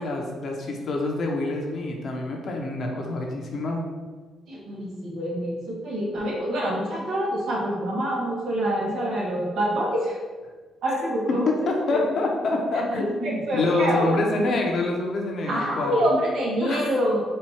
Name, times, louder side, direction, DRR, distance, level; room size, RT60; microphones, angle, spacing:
voice 1, 0.0-3.8 11.3-16.0 16.6-16.9, left 2 dB, 55° left, 0 dB, 0.9 m, -26 dB
voice 2, 4.5-10.2 10.8-11.5 11.9-12.1 13.0-14.2 15.5-17.2, equal, 70° right, -3 dB, 1.3 m, -26 dB
4.3 x 2.7 x 4.6 m, 1.4 s
cardioid pair, 90°, 0 cm